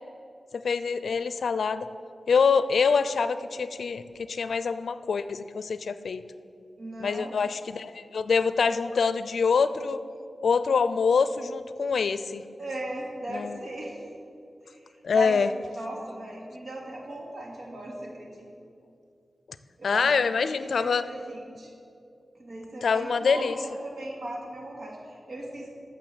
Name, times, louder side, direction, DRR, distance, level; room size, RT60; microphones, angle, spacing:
voice 1, 0.5-1.9 2.3-6.2 7.0-10.0 10.4-12.4 13.3-13.6 15.0-15.5 19.8-21.0 22.8-23.5, left 5 dB, 85° left, 13 dB, 0.5 m, -25 dB
voice 2, 6.8-7.3 12.6-14.0 14.6-15.4 15.7-18.5 19.8-21.7 22.4-25.7, right 1 dB, 65° right, -1 dB, 2.6 m, -38 dB
12.0 x 6.8 x 7.8 m, 2.5 s
wide cardioid pair, 115°, 0 cm